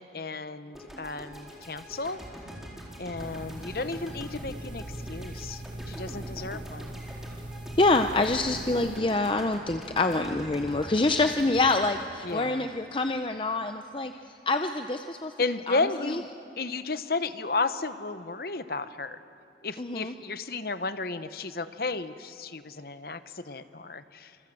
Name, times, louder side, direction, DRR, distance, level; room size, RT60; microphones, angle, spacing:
voice 1, 0.0-2.2 3.0-7.0 12.2-12.7 15.4-16.3 16.6-19.2 19.6-24.4, left 3 dB, 55° left, 11 dB, 0.9 m, -33 dB
sound 1, 0.7-13.0, equal, ahead, 4.2 m, -44 dB
sound 2, 3.2-9.0, right 1 dB, 25° right, 0.7 m, -41 dB
voice 2, 7.8-14.1 14.5-15.3 15.7-16.2 19.8-20.1, left 2 dB, 30° left, 7 dB, 0.6 m, -26 dB
27.0 x 26.0 x 7.8 m, 2.6 s
head